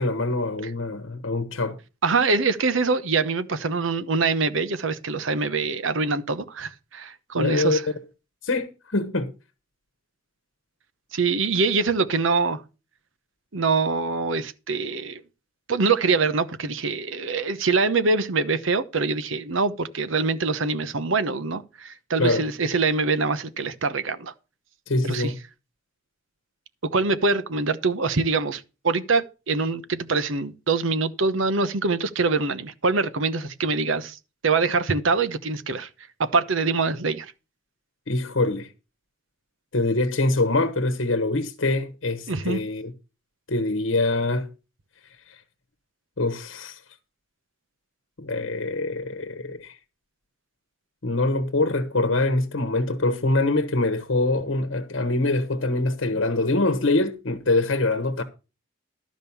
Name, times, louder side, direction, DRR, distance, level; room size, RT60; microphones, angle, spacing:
voice 1, 0.0-1.8 7.3-7.9 8.4-9.3 22.2-22.4 24.9-25.4 38.1-38.7 39.7-42.9 43.5-44.5 45.3-45.4 46.2-46.8 48.2-49.7 51.0-58.2, left 2 dB, 75° left, 1.2 m, -24 dB
voice 2, 2.0-7.8 11.1-12.6 13.5-15.2 15.7-24.3 25.0-25.3 26.8-34.2 34.4-35.9 36.2-37.3 42.3-42.6, right 4 dB, 75° right, 0.9 m, -24 dB
12.5 x 5.2 x 7.0 m
head